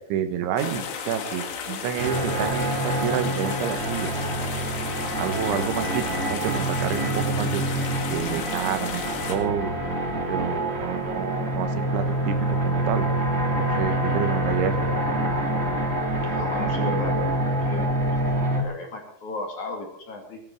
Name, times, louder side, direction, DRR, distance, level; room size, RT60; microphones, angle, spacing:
voice 1, 0.1-4.1 5.2-9.7 10.3-13.1 13.6-15.0, right 9 dB, 80° right, 9 dB, 3.7 m, -29 dB
sound 1, 0.6-9.4, left 7 dB, 90° left, 4.6 m, -34 dB
sound 2, 2.0-18.6, right 1 dB, 40° right, 0.8 m, -26 dB
voice 2, 16.2-17.3 17.6-20.4, left 3 dB, 50° left, 2 dB, 3.1 m, -35 dB
18.0 x 10.5 x 6.0 m, 0.69 s
omnidirectional pair, 5.4 m